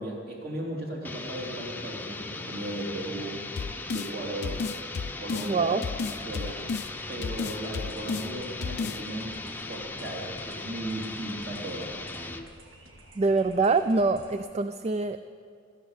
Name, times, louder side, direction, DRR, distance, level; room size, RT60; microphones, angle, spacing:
voice 1, 0.0-3.4 3.9-4.6 5.2-6.6 7.1-9.4 9.7-11.9, right 1 dB, 50° right, -1 dB, 3.2 m, -36 dB
sound 1, 1.0-12.5, left 2 dB, 10° left, 0.7 m, -38 dB
sound 2, 3.6-4.1 4.4-5.5 5.8-6.9 7.2-8.3 8.6-9.0, left 5 dB, 55° left, 0.4 m, -32 dB
voice 2, 5.4-5.8 13.2-15.2, right 3 dB, 35° right, 11 dB, 0.4 m, -25 dB
sound 3, 6.1-14.4, right 1 dB, 80° right, 1.9 m, -52 dB
16.0 x 13.5 x 6.6 m, 2.3 s
head